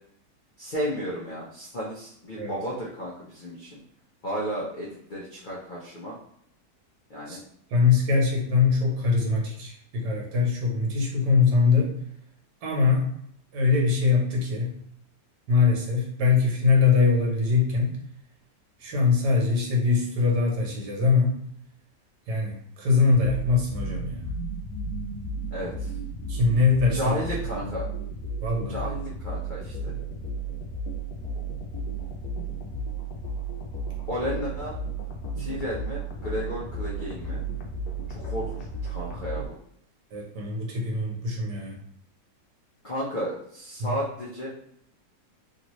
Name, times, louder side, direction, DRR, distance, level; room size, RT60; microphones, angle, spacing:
voice 1, 0.6-3.8 4.2-6.2 7.1-7.4 25.5-25.9 26.9-27.9 28.7-29.9 34.1-34.8 35.4-37.4 38.1-39.6 42.8-44.5, equal, 90° left, -5 dB, 0.4 m, -33 dB
voice 2, 7.7-11.9 12.6-13.1 13.5-14.7 15.5-18.0 18.8-21.4 22.3-24.3 26.3-27.2 27.6-27.7 28.4-28.8 40.1-41.8 43.8-43.9, left 4 dB, 70° right, -1 dB, 1.4 m, -22 dB
sound 1, 23.1-39.5, right 2 dB, 70° left, 1.0 m, -33 dB
3.1 x 2.7 x 3.0 m, 0.70 s
omnidirectional pair, 1.9 m